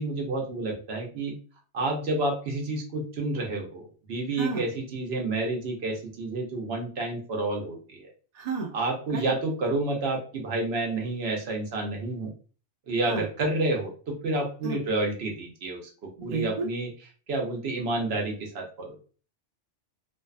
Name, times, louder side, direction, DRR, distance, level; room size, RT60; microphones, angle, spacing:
voice 1, 0.0-1.3 1.7-8.1 8.7-12.3 12.9-16.9 17.3-19.0, right 2 dB, 65° right, 1 dB, 0.9 m, -29 dB
voice 2, 8.3-8.7 9.1-9.3 13.1-13.2 14.6-14.8 16.3-16.7, right 4 dB, 50° right, 0 dB, 0.5 m, -31 dB
2.5 x 2.2 x 2.3 m, 0.39 s
omnidirectional pair, 1.2 m